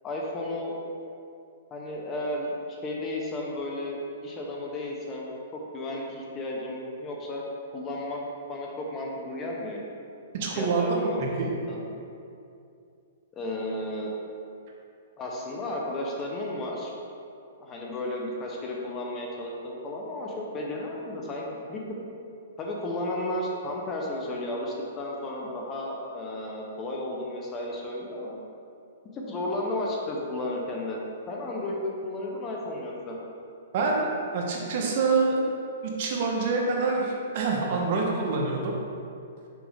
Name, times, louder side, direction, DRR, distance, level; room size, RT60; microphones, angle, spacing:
voice 1, 0.0-0.8 1.7-7.4 7.7-8.2 8.5-9.8 10.5-11.2 11.7-11.8 13.3-14.1 15.2-16.9 17.6-22.0 22.6-28.4 29.1-31.0 31.3-33.2, left 1 dB, 20° left, -2 dB, 0.8 m, -33 dB
voice 2, 10.4-11.5 33.7-35.4 35.8-38.7, right 3 dB, 45° right, -1 dB, 1.1 m, -26 dB
6.1 x 5.1 x 3.6 m, 2.5 s
hypercardioid pair, 155°, 0 cm